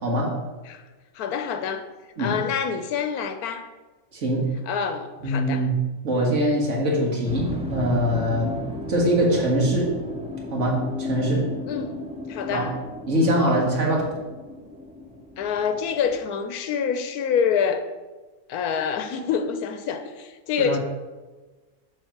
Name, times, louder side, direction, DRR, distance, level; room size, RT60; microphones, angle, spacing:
voice 1, 0.0-0.3 2.2-2.4 4.1-4.5 5.2-5.8 6.0-8.6 8.9-9.9 10.5-11.5 12.5-12.7 13.1-14.1 20.6-20.8, equal, 55° right, -2 dB, 2.0 m, -23 dB
voice 2, 1.1-1.8 2.2-3.7 4.7-5.7 11.7-11.9 12.3-12.8 15.4-17.8 18.5-20.8, left 7 dB, 85° left, 8 dB, 1.1 m, -26 dB
sound 1, 7.2-16.2, left 2 dB, 5° right, 0.5 m, -34 dB
7.4 x 4.6 x 5.9 m, 1.3 s
omnidirectional pair, 1.5 m